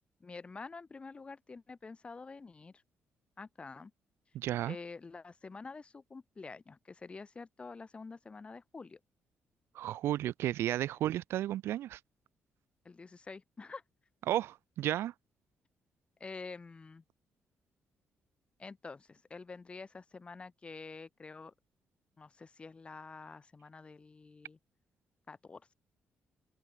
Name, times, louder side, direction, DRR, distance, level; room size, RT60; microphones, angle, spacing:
voice 1, 0.2-2.8 3.4-3.9 4.7-9.0 12.8-13.8 16.2-17.0 18.6-21.5 22.2-24.6 25.3-25.7, left 4 dB, 25° left, 1.5 m, -48 dB
voice 2, 4.3-4.8 9.7-12.0 14.3-15.1, right 13 dB, 85° right, 0.6 m, -33 dB
open air
cardioid pair, 110°, 4 cm